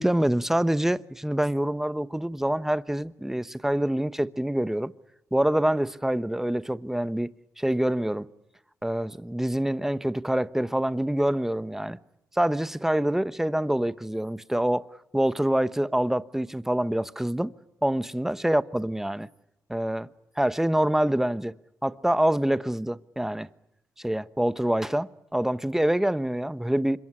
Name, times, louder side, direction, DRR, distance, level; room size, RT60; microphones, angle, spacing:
voice 1, 0.0-4.9 5.3-7.3 7.6-8.3 8.8-12.0 12.4-14.9 15.1-17.5 17.8-19.3 19.7-20.1 20.4-21.5 21.8-23.5 24.0-27.0, right 1 dB, 5° right, 1.0 m, -26 dB
26.0 x 22.5 x 10.0 m
cardioid pair, 65°, 7 cm